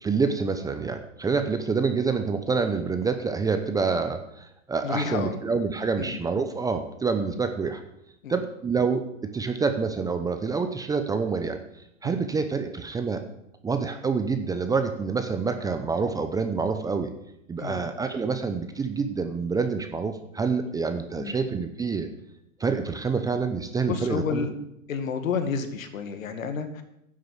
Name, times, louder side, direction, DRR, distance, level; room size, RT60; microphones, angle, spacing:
voice 1, 0.0-7.8 8.3-11.6 12.0-13.2 13.6-17.1 17.5-22.1 22.6-24.5, right 5 dB, 10° right, 7 dB, 0.6 m, -27 dB
voice 2, 4.8-5.4 6.0-6.2 8.2-8.4 12.0-12.3 17.6-17.8 21.2-21.4 23.9-24.5 24.9-26.8, left 6 dB, 70° left, 8 dB, 2.1 m, -30 dB
10.5 x 7.6 x 8.1 m, 0.80 s
hypercardioid pair, 130°, 41 cm